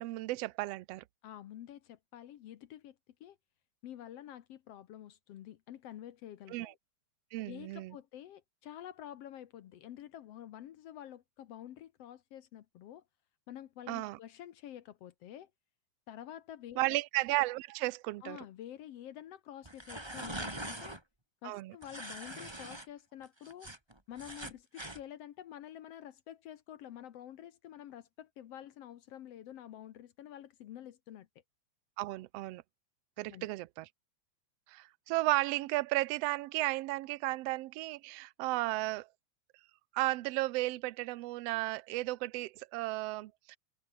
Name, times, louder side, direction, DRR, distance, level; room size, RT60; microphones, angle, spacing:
voice 1, 0.0-1.0 6.5-6.7 7.3-8.0 13.9-14.2 16.8-18.4 21.4-21.7 32.0-32.6 33.2-33.9 34.7-39.1 39.9-43.6, right 19 dB, 85° right, 1.4 m, -34 dB
voice 2, 1.2-2.9 3.2-3.4 3.8-6.8 7.4-13.0 13.5-15.5 16.1-17.0 18.2-21.0 21.4-23.7 24.1-31.3 33.2-33.5, left 11 dB, 65° left, 1.7 m, -48 dB
sound 1, 19.6-21.0 21.8-22.9 23.2-25.0, right 1 dB, 10° right, 2.6 m, -43 dB
omnidirectional pair, 3.7 m